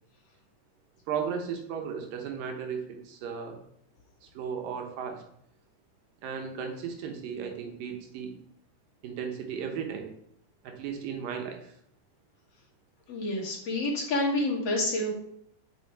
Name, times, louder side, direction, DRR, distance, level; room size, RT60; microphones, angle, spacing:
voice 1, 1.1-3.6 4.2-5.2 6.2-8.3 9.0-10.1 10.6-11.7, right 7 dB, 85° right, 3 dB, 2.9 m, -35 dB
voice 2, 13.1-15.1, left 1 dB, 50° left, -4 dB, 2.7 m, -28 dB
8.0 x 6.2 x 4.3 m, 0.72 s
omnidirectional pair, 3.9 m